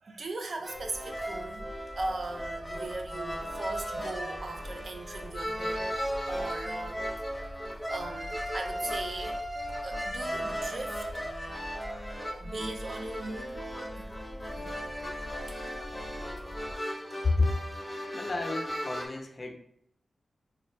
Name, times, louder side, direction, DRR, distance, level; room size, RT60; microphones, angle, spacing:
voice 1, 0.0-6.0 6.3-7.6 7.9-9.4 9.8-11.0 12.4-13.6 13.9-14.1 14.5-14.8, right 2 dB, 65° right, 5 dB, 0.5 m, -39 dB
sound 1, 0.6-19.1, equal, 5° right, 1.0 m, -36 dB
sound 2, 0.7-16.8, equal, 25° right, 1.1 m, -46 dB
voice 2, 17.2-17.5 18.1-19.6, left 3 dB, 45° left, 3 dB, 0.6 m, -29 dB
3.2 x 2.4 x 4.3 m, 0.69 s
wide cardioid pair, 75°, 0 cm